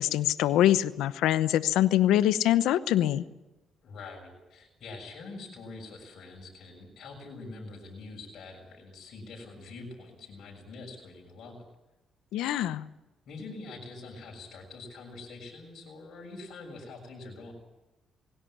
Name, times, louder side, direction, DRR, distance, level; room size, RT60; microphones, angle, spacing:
voice 1, 0.0-3.2 12.3-12.8, left 12 dB, 90° left, 15 dB, 0.9 m, -24 dB
voice 2, 3.8-11.6 13.2-17.5, left 3 dB, 65° left, 0 dB, 6.7 m, -45 dB
20.0 x 17.0 x 9.8 m, 1.0 s
cardioid pair, 90°, 0 cm